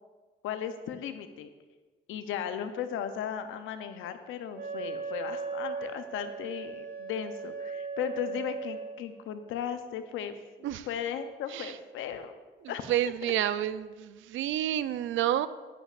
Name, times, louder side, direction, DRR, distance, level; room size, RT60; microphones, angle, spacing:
voice 1, 0.4-1.5 2.1-10.4 10.9-12.3 12.7-12.8, left 8 dB, 85° left, 9 dB, 0.7 m, -36 dB
Wind instrument woodwind instrument, 4.5-9.0, right 4 dB, 50° right, 2.9 m, -38 dB
voice 2, 12.9-15.5, right 12 dB, 80° right, 14 dB, 0.5 m, -29 dB
10.5 x 10.5 x 2.5 m, 1.3 s
cardioid pair, 90°, 20 cm